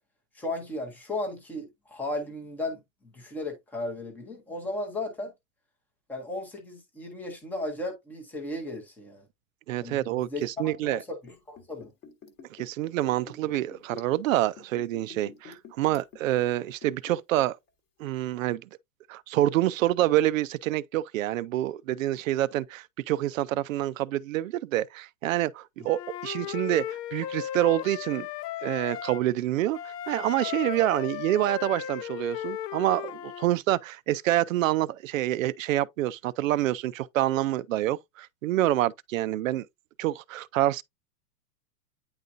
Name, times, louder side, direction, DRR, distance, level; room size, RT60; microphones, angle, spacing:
voice 1, 0.3-2.8 3.1-5.3 6.1-9.2 9.8-11.9 25.8-25.9, left 2 dB, 5° left, 0.6 m, -35 dB
voice 2, 9.7-11.0 12.5-17.6 18.0-18.6 19.1-28.3 28.6-39.7 40.0-40.8, right 14 dB, 55° right, 0.5 m, -27 dB
Liquid, 11.2-17.4 17.7-17.8, left 6 dB, 20° left, 1.1 m, -48 dB
Wind instrument woodwind instrument, 25.8-29.2 29.7-33.5, left 12 dB, 75° left, 0.8 m, -36 dB
9.5 x 3.9 x 2.5 m
supercardioid pair, 165°, 48 cm